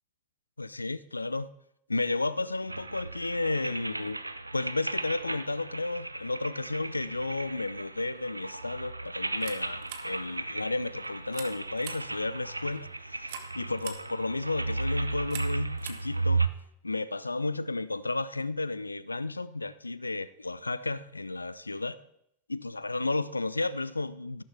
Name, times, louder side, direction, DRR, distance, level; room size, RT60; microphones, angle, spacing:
voice 1, 0.6-1.5 1.9-4.2 4.5-16.5 16.8-22.0 22.5-24.4, left 2 dB, 80° left, 0.4 m, -33 dB
sound 1, 2.7-16.5, right 3 dB, 85° right, 0.5 m, -35 dB
sound 2, 9.3-16.7, right 9 dB, 50° right, 1.3 m, -47 dB
13.0 x 12.0 x 3.6 m
figure-of-eight pair, 90°, 0 cm